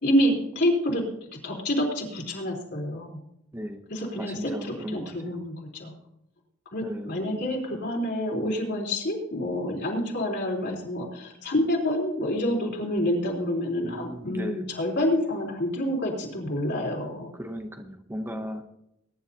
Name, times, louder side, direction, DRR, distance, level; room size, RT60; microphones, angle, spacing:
voice 1, 0.0-1.0 1.4-3.2 3.9-4.3 4.6-5.9 6.7-17.3 18.3-18.4, left 1 dB, 55° left, -1 dB, 3.7 m, -27 dB
voice 2, 4.2-5.5 6.8-7.5 13.8-14.8 17.3-18.6, equal, 10° right, 5 dB, 0.8 m, -37 dB
21.5 x 10.5 x 2.8 m, 0.81 s
head